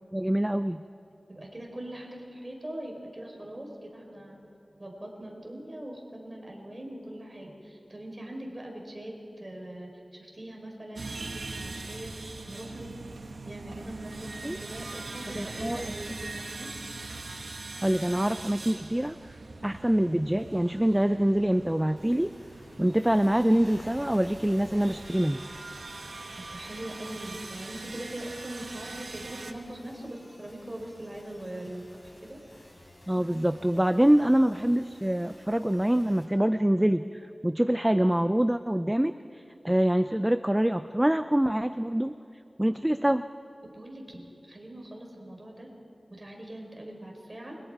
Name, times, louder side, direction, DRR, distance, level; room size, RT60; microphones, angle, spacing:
voice 1, 0.1-0.8 14.4-14.6 15.4-15.8 17.8-19.4 19.6-22.3 22.8-25.4 33.1-37.0 37.4-42.2 42.6-43.2, right 1 dB, 10° right, 11 dB, 0.4 m, -25 dB
voice 2, 1.3-4.4 4.8-12.9 13.4-16.7 26.5-32.4 43.6-45.7 46.1-47.5, right 1 dB, 30° right, 0 dB, 4.6 m, -42 dB
sound 1, 11.0-29.5, right 3 dB, 85° right, 1.3 m, -42 dB
sound 2, 22.0-36.2, left 1 dB, 30° left, 5.5 m, -52 dB
29.0 x 22.5 x 4.8 m, 2.7 s
wide cardioid pair, 80°, 0 cm